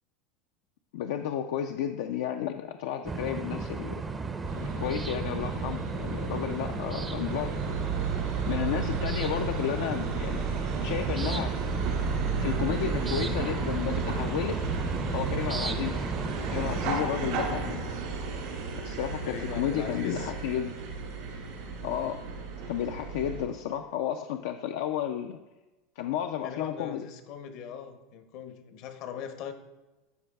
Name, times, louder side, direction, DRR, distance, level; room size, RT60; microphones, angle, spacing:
voice 1, 0.9-4.0 4.6-7.6 8.1-11.5 12.3-16.0 16.5-17.9 18.7-20.8 21.8-22.2 22.6-25.4 26.0-27.0, left 10 dB, 75° left, 5 dB, 0.3 m, -32 dB
sound 1, 3.0-16.9, right 4 dB, 20° right, 0.5 m, -34 dB
sound 2, 4.4-23.4, right 4 dB, 75° right, 2.2 m, -33 dB
voice 2, 19.3-20.3 26.4-29.5, left 8 dB, 60° left, 8 dB, 0.7 m, -40 dB
12.5 x 4.6 x 2.3 m, 1.1 s
supercardioid pair, 110°, 0 cm